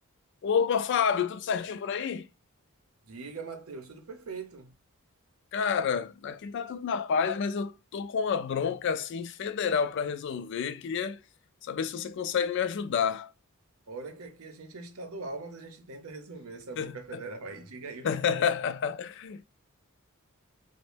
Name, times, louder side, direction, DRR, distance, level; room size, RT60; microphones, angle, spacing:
voice 1, 0.4-2.3 5.5-11.2 11.6-13.3 16.8-17.2 18.0-19.4, left 6 dB, 55° left, 0.3 m, -29 dB
voice 2, 3.1-4.7 13.9-18.5, right 3 dB, 80° right, 0.6 m, -42 dB
3.0 x 2.0 x 3.2 m
head